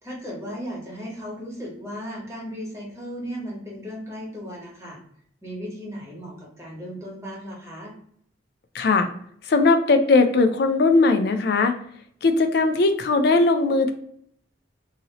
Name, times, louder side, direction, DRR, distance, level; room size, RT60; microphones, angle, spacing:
voice 1, 0.0-5.0 5.4-7.9, equal, 15° right, -3 dB, 1.0 m, -36 dB
voice 2, 8.7-9.1 9.5-11.7 12.2-13.9, left 3 dB, 55° left, 7 dB, 0.4 m, -19 dB
2.8 x 2.7 x 2.9 m, 0.66 s
head